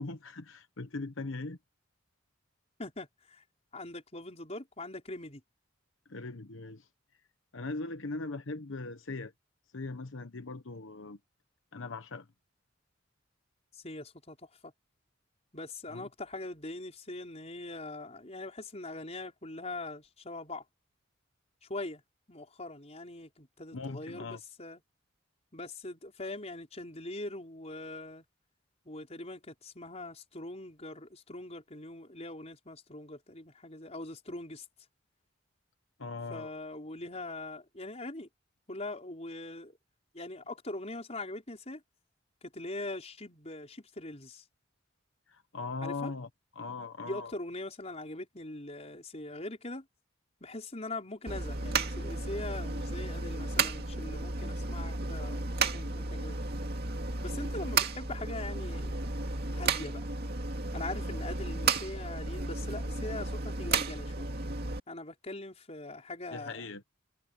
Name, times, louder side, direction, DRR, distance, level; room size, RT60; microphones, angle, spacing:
voice 1, 0.0-1.6 6.1-6.9 7.5-9.3 9.7-11.2 11.7-12.3 15.9-16.1 23.7-24.4 36.0-36.5 45.3-46.3 46.6-47.3 61.0-61.2 66.3-66.8, left 3 dB, 85° left, 1.1 m, -39 dB
voice 2, 2.8-3.4 3.7-5.4 13.7-14.4 14.6-14.7 15.5-20.6 21.7-22.0 22.3-24.8 25.5-28.2 28.9-34.7 36.3-38.3 38.7-39.8 40.1-41.8 42.4-44.4 45.8-46.1 47.1-49.9 50.4-56.4 57.2-59.1 59.5-60.0 60.7-64.3 64.9-66.8, left 2 dB, 35° left, 5.3 m, -42 dB
sound 1, 51.3-64.8, right 3 dB, 55° right, 2.4 m, -33 dB
head